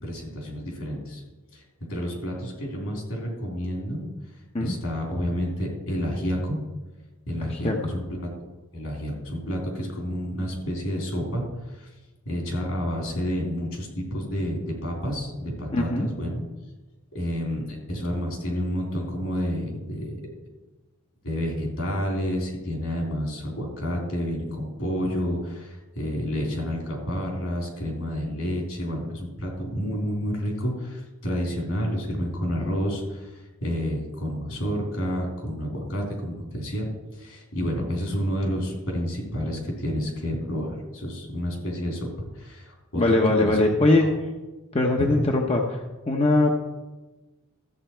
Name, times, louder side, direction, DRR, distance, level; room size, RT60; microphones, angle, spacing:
voice 1, 0.0-1.2 1.5-4.1 4.6-6.6 7.3-8.3 8.7-11.9 12.2-16.4 17.1-20.2 21.2-43.6 44.0-44.1 45.0-45.3, equal, 70° left, 0 dB, 3.4 m, -30 dB
voice 2, 7.4-7.8 15.7-16.1 42.9-44.1 44.7-45.8 46.1-46.5, left 2 dB, 25° left, 1 dB, 0.9 m, -21 dB
13.5 x 8.0 x 4.5 m, 1.2 s
head